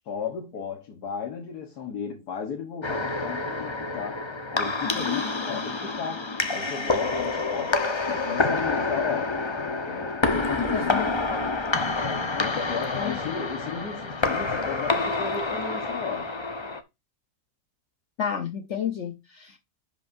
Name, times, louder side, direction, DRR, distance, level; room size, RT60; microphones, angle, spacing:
voice 1, 0.1-7.8 8.1-9.4 9.7-11.1 11.9-16.3, left 6 dB, 85° left, 1.8 m, -35 dB
sound 1, 2.8-16.8, left 3 dB, 25° left, 0.7 m, -28 dB
voice 2, 10.6-11.5 12.9-13.4 18.2-19.6, left 7 dB, 55° left, 1.0 m, -31 dB
11.0 x 5.5 x 2.6 m
omnidirectional pair, 1.7 m